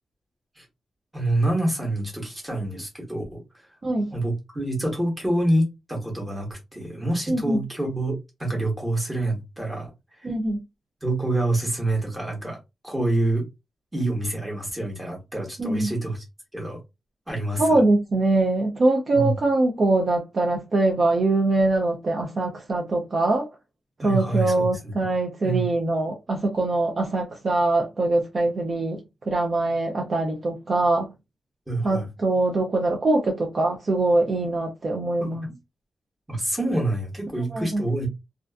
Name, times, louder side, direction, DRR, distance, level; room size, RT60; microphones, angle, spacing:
voice 1, 1.1-3.4 4.1-9.9 11.0-12.6 12.8-13.4 13.9-16.2 16.5-16.8 17.3-17.8 19.1-19.3 24.0-25.1 25.4-25.6 31.7-32.1 35.2-35.6 36.3-38.1, right 1 dB, 10° right, 1.0 m, -27 dB
voice 2, 3.8-4.1 7.3-7.6 10.2-10.6 15.6-15.9 17.6-23.5 24.0-29.0 29.3-31.1 31.8-35.5 37.5-37.8, right 2 dB, 40° right, 0.4 m, -23 dB
2.4 x 2.4 x 2.2 m
wide cardioid pair, 160°, 0 cm